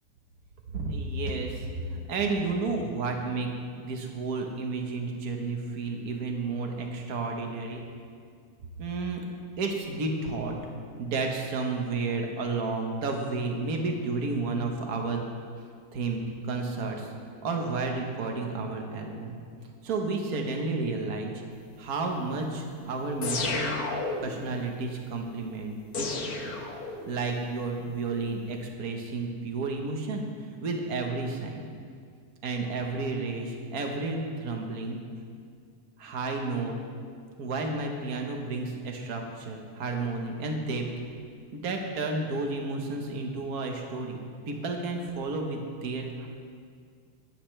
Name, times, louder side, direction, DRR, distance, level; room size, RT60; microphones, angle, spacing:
voice 1, 0.7-3.5 3.8-7.8 8.8-9.2 9.6-10.5 11.0-15.3 15.9-17.1 17.4-19.4 19.8-21.3 21.8-23.7 24.2-26.5 27.1-30.3 30.6-31.6 32.4-35.0 36.0-36.7 37.4-40.8 41.5-44.2 44.5-46.3, right 3 dB, 60° right, 2 dB, 0.9 m, -31 dB
sound 1, 23.2-24.5 25.9-27.2, left 3 dB, 85° left, 0.8 m, -32 dB
22.0 x 9.7 x 3.3 m, 2.2 s
omnidirectional pair, 3.5 m